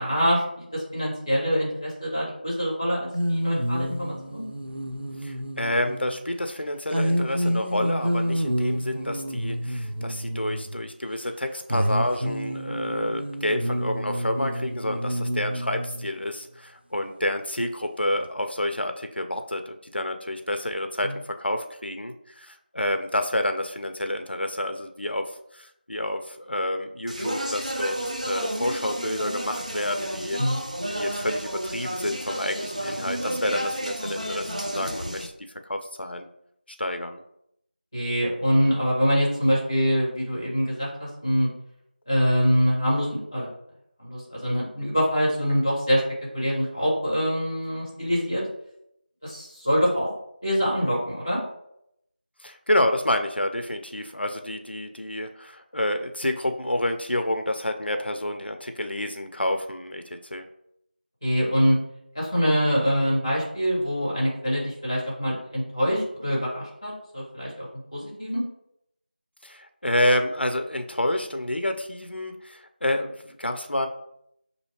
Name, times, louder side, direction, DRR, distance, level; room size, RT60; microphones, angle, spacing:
voice 1, 0.0-4.4 30.4-30.6 37.9-41.5 42.1-43.5 44.0-46.0 46.3-48.4 49.2-50.1 50.4-51.4 61.2-61.8 62.1-67.7 67.9-68.4, equal, 10° left, -5 dB, 0.9 m, -24 dB
sound 1, 3.1-6.2 6.9-10.9 11.7-16.1 18.2-18.3, equal, 90° right, 0.5 m, -28 dB
voice 2, 5.2-30.4 30.9-35.3 35.7-36.3 36.8-37.2 52.4-60.5 69.4-73.9, left 1 dB, 80° left, 6 dB, 0.5 m, -29 dB
Speech, 27.1-35.3, right 1 dB, 40° right, 0.5 m, -31 dB
6.2 x 2.7 x 2.9 m, 0.77 s
figure-of-eight pair, 175°, 6 cm